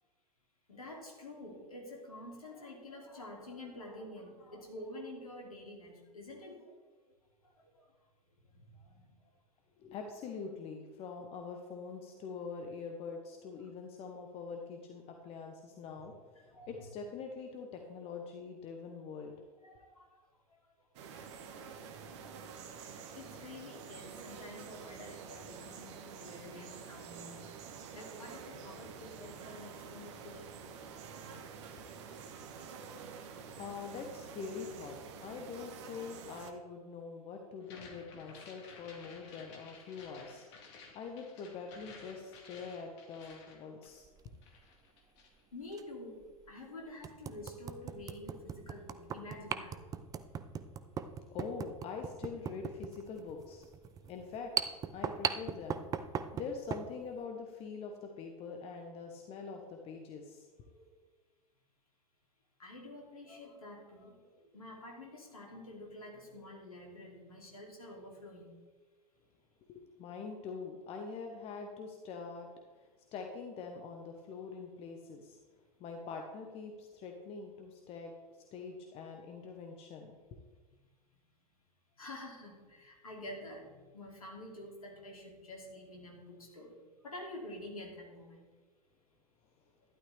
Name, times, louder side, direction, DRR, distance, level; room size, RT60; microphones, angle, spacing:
voice 1, 0.7-6.8 7.7-7.9 8.5-9.1 16.5-16.7 19.6-20.0 21.0-21.2 23.1-27.4 27.9-30.5 45.5-46.2 46.5-49.9 52.4-52.5 60.7-60.8 62.6-68.6 80.7-80.8 82.0-86.8 87.0-88.5, left 1 dB, 70° left, 0 dB, 2.8 m, -48 dB
voice 2, 9.8-16.1 16.4-19.3 33.6-40.4 40.9-44.1 51.3-53.6 54.1-55.8 56.3-60.5 69.7-72.5 73.1-75.4 75.8-78.1 78.5-80.2, left 5 dB, 30° left, 3 dB, 1.2 m, -44 dB
sound 1, 21.0-36.5, right 6 dB, 50° right, 1.3 m, -48 dB
sound 2, 37.6-44.2 44.4-45.4, left 4 dB, 50° left, 2.3 m, -54 dB
sound 3, 44.0-44.3 45.7-45.8 46.4-46.5 47.0-56.9, right 7 dB, 20° right, 0.5 m, -39 dB
12.5 x 11.5 x 3.4 m, 1.4 s
figure-of-eight pair, 90°, 19 cm